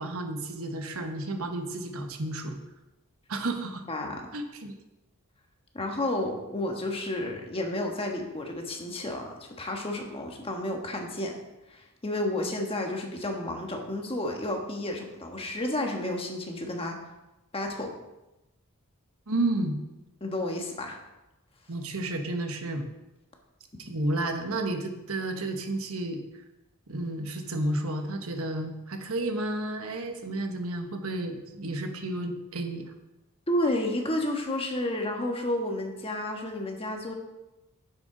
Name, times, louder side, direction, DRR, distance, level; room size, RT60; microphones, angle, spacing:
voice 1, 0.0-2.6 3.3-3.8 4.3-4.7 19.3-19.8 21.7-22.9 23.8-26.2 26.9-32.8, right 2 dB, 70° right, 5 dB, 1.2 m, -31 dB
voice 2, 3.9-4.2 5.7-11.4 11.7-17.0 17.5-17.9 20.2-21.0 33.5-37.1, left 1 dB, 25° left, 2 dB, 1.4 m, -31 dB
10.5 x 7.9 x 3.9 m, 0.98 s
head